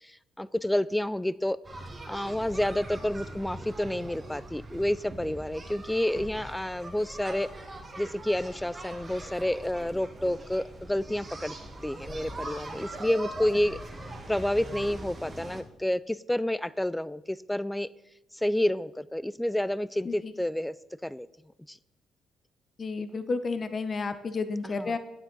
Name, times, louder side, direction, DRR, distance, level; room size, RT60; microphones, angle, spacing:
voice 1, 0.0-1.6 2.1-7.5 8.0-11.6 11.8-13.8 14.3-17.9 18.3-20.7 21.0-21.3 21.7-21.8 24.8-25.0, left 1 dB, 5° left, 19 dB, 0.3 m, -29 dB
sound 1, 1.6-15.6, right 2 dB, 25° right, 1.4 m, -42 dB
voice 2, 22.8-25.0, left 4 dB, 40° left, 11 dB, 0.8 m, -31 dB
9.6 x 8.0 x 3.9 m, 0.92 s
cardioid pair, 90°, 0 cm